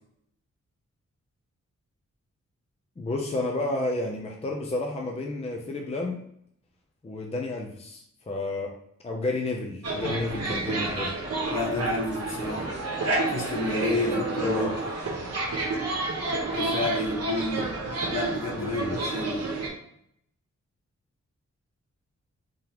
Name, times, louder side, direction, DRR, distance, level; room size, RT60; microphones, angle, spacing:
voice 1, 3.0-6.2 7.0-8.7 9.0-11.1 14.0-14.7 18.5-19.0, left 2 dB, 20° left, 0 dB, 0.5 m, -31 dB
sound 1, 9.8-19.7, right 2 dB, 60° right, 0.9 m, -30 dB
voice 2, 11.5-12.7 13.3-14.7 16.5-17.7 18.1-19.4, left 2 dB, 65° left, -1 dB, 1.1 m, -30 dB
3.6 x 3.5 x 2.9 m, 0.70 s
wide cardioid pair, 170°, 29 cm